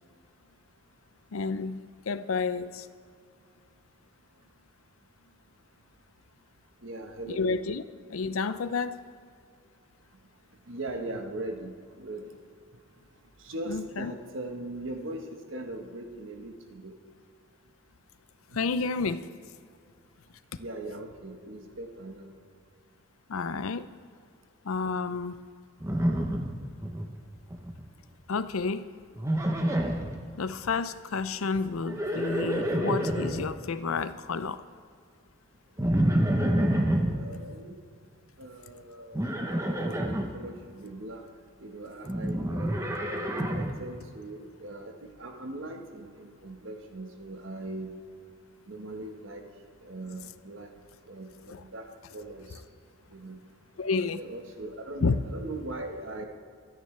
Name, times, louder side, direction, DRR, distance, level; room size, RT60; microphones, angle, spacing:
voice 1, 1.3-2.9 7.3-7.8 8.1-9.1 13.7-14.1 18.5-19.3 23.3-23.9 24.6-25.4 28.3-28.9 30.4-34.6 51.5-51.6 53.8-54.2 55.0-55.2, left 4 dB, 85° left, 13 dB, 0.5 m, -30 dB
voice 2, 6.8-7.5 10.7-12.3 13.5-16.9 20.6-22.3 37.1-37.8 38.4-41.2 41.6-42.8 43.5-44.9 45.2-47.9 48.7-49.4 49.8-50.7 51.1-51.8 52.1-52.5 53.1-53.4 54.0-56.2, right 2 dB, 70° right, 4 dB, 1.3 m, -40 dB
Livestock farm animals working animals, 25.8-27.1 27.3-27.9 29.2-30.2 31.7-33.5 35.8-37.2 39.1-40.3 42.1-43.8, right 1 dB, 15° right, 0.8 m, -28 dB
23.0 x 9.7 x 3.3 m, 2.2 s
head